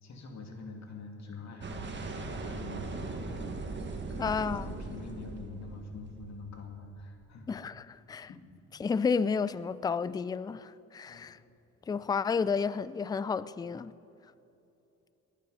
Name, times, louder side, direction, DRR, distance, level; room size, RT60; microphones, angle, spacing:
voice 1, 0.0-7.6 8.3-8.4 11.1-11.4, left 3 dB, 60° left, 2.5 m, -45 dB
sound 1, 1.6-6.8, right 3 dB, 35° right, 1.7 m, -39 dB
voice 2, 4.2-4.7 7.5-8.3 8.8-11.4 11.9-13.9, left 5 dB, 15° left, 0.3 m, -31 dB
21.5 x 10.5 x 5.6 m
cardioid pair, 105°, 32 cm